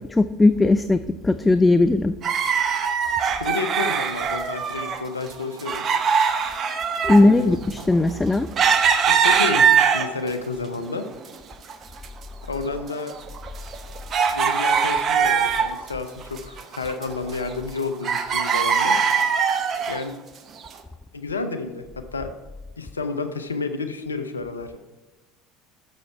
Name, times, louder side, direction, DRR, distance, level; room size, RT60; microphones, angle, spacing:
voice 1, 0.2-2.1 7.0-8.5, left 2 dB, 15° left, 12 dB, 0.3 m, -18 dB
sound 1, 2.2-5.0 5.3-10.4 10.8-11.7 12.0-12.1 12.7-15.9 16.2-17.8 18.0-20.0 20.6-20.7, right 6 dB, 40° right, 0.8 m, -22 dB
voice 2, 3.4-5.9 7.0-7.6 9.1-11.0 12.5-13.1 14.3-19.0 19.9-20.2 21.1-22.3 22.8-24.8, left 4 dB, 90° left, 8 dB, 0.6 m, -30 dB
6.3 x 6.3 x 5.7 m, 1.2 s
hypercardioid pair, 70°, 0 cm